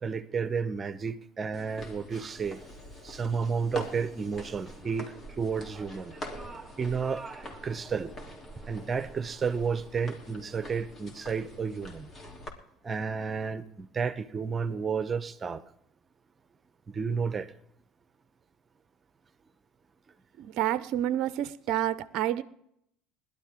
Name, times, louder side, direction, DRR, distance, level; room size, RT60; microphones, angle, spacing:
voice 1, 0.0-2.6 3.0-6.1 6.8-7.2 7.6-8.1 8.7-12.1 12.8-15.6 16.9-17.5, right 5 dB, 30° right, 1.0 m, -31 dB
sound 1, 1.5-12.5, left 1 dB, 35° left, 3.3 m, -45 dB
sound 2, 4.3-10.0, right 3 dB, 10° right, 2.0 m, -48 dB
voice 2, 20.4-22.4, right 12 dB, 60° right, 0.6 m, -29 dB
20.5 x 12.0 x 3.7 m
hypercardioid pair, 70°, 0 cm